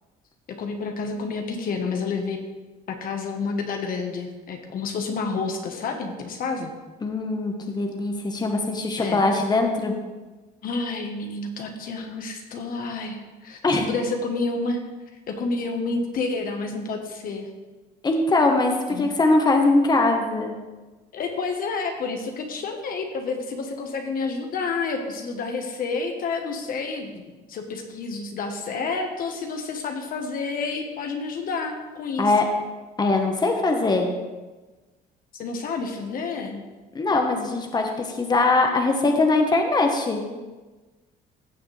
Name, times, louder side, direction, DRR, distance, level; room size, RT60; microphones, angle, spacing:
voice 1, 0.5-2.4 2.9-6.7 9.0-9.2 10.6-14.8 15.3-17.5 18.9-19.1 21.1-32.3 35.3-36.6, left 4 dB, 60° left, 4 dB, 1.3 m, -29 dB
voice 2, 7.0-9.9 13.6-13.8 18.0-20.5 32.2-32.4 33.0-34.1 36.9-40.2, left 2 dB, 25° left, 3 dB, 1.3 m, -21 dB
15.5 x 7.1 x 3.4 m, 1.2 s
cardioid pair, 110°, 17 cm